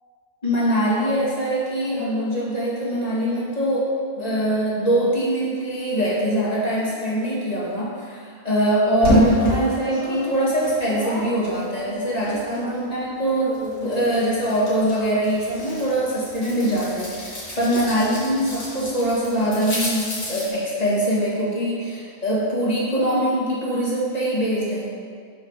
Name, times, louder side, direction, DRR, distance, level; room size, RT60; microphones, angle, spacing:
voice 1, 0.4-3.9 4.1-24.9, right 1 dB, 25° left, -7 dB, 1.6 m, -23 dB
sound 1, 9.0-12.9 13.3-20.5, equal, 80° left, 2.6 m, -28 dB
5.0 x 5.0 x 6.2 m, 2.1 s
omnidirectional pair, 1.7 m